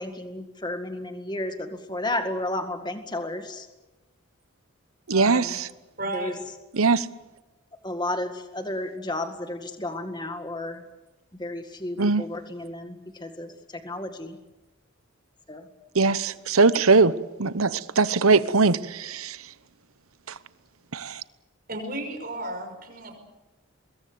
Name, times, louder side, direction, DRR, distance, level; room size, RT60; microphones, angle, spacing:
voice 1, 0.0-3.7 5.1-5.6 6.1-6.3 7.8-10.8 11.4-13.5 13.8-14.4 15.5-15.6, left 1 dB, 20° left, 1.9 m, -32 dB
voice 2, 5.1-5.7 6.7-7.1 12.0-12.2 15.9-17.1 17.4-19.4 20.9-21.2, right 4 dB, 85° right, 1.0 m, -21 dB
voice 3, 6.0-6.3 21.7-23.2, right 2 dB, 45° right, 5.9 m, -33 dB
24.5 x 21.5 x 8.0 m
head